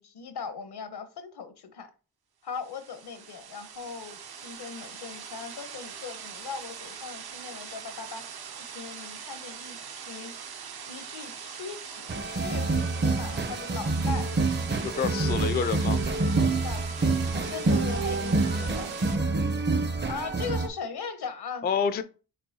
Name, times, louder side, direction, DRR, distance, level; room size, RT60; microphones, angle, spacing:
voice 1, 0.0-1.9 2.4-8.3 8.6-10.3 10.9-14.3 16.6-18.9 20.1-21.7, left 5 dB, 75° left, 0.8 m, -39 dB
sound 1, 2.5-19.2, right 7 dB, 65° right, 0.7 m, -42 dB
sound 2, 12.1-20.7, right 3 dB, 30° right, 0.6 m, -27 dB
voice 2, 14.9-16.0 21.6-22.0, left 6 dB, 25° left, 0.3 m, -27 dB
5.4 x 3.3 x 2.7 m
cardioid pair, 80°, 40 cm